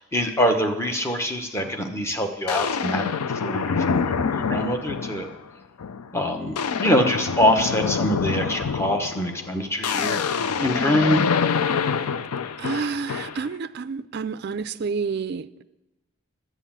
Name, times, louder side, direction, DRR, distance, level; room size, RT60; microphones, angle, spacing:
voice 1, 0.0-3.0 3.4-5.3 6.1-11.2, equal, 10° left, 0.9 m, -24 dB
sound 1, 1.6-1.8 2.5-5.4 5.8-6.1 6.4-13.5, left 6 dB, 90° left, 0.5 m, -26 dB
voice 2, 11.7-12.1 12.6-15.6, right 5 dB, 45° right, 0.4 m, -30 dB
11.0 x 8.0 x 7.4 m
head